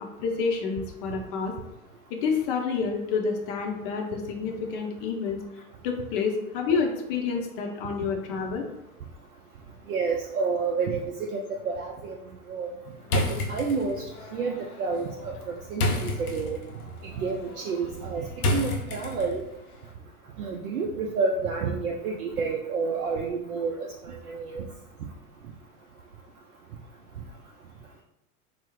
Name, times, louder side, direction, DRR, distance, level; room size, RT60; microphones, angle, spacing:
voice 1, 0.2-1.5 2.2-5.4 5.8-8.7, left 5 dB, 35° left, 2 dB, 0.5 m, -28 dB
voice 2, 9.9-12.1 12.5-12.7 13.1-13.2 13.5-14.0 14.3-15.3 15.7-16.6 17.2-18.3 18.5-19.4 20.4-23.8 24.3-24.6, right 4 dB, 70° right, 0 dB, 0.5 m, -29 dB
sound 1, 13.0-19.5, left 1 dB, 70° left, 0.7 m, -31 dB
3.8 x 2.0 x 3.0 m, 0.86 s
figure-of-eight pair, 85°, 45 cm